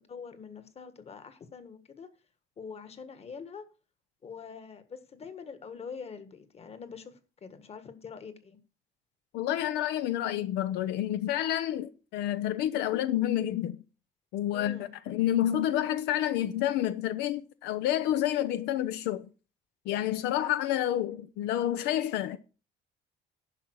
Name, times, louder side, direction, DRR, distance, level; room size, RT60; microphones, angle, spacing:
voice 1, 0.1-2.1 2.6-3.6 4.2-8.6 14.5-14.9, left 5 dB, 35° left, 1.6 m, -44 dB
voice 2, 9.3-13.8 14.3-19.3 19.9-22.4, left 12 dB, 90° left, 0.7 m, -29 dB
11.0 x 5.6 x 6.3 m
cardioid pair, 110°, 17 cm